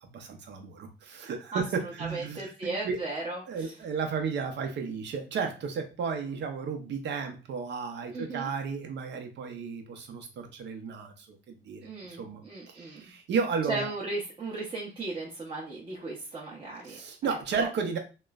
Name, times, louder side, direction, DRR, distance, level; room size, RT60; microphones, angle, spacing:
voice 1, 0.0-3.0 3.5-12.4 12.7-13.9 16.8-18.0, right 5 dB, 65° right, 5 dB, 0.7 m, -33 dB
voice 2, 1.5-3.7 8.1-8.5 11.8-13.0 13.7-17.7, right 2 dB, 25° right, -5 dB, 0.7 m, -36 dB
3.0 x 2.0 x 2.3 m, 0.31 s
cardioid pair, 90°, 20 cm